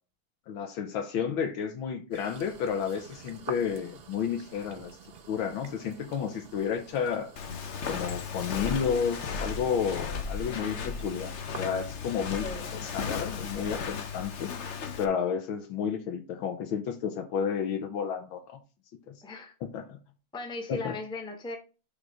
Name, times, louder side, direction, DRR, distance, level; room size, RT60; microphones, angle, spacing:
voice 1, 0.5-4.9 5.3-7.3 7.9-12.5 12.7-14.5 15.0-18.6 19.1-19.2 19.6-20.0 20.7-21.0, left 7 dB, 80° left, 1.7 m, -31 dB
sound 1, 2.1-11.9, right 6 dB, 60° right, 0.6 m, -48 dB
Walk footsteps, 7.4-15.0, left 5 dB, 50° left, 0.8 m, -35 dB
voice 2, 12.4-12.7 19.2-19.5 20.3-21.6, left 2 dB, 5° left, 0.8 m, -37 dB
6.8 x 4.0 x 4.8 m
omnidirectional pair, 2.2 m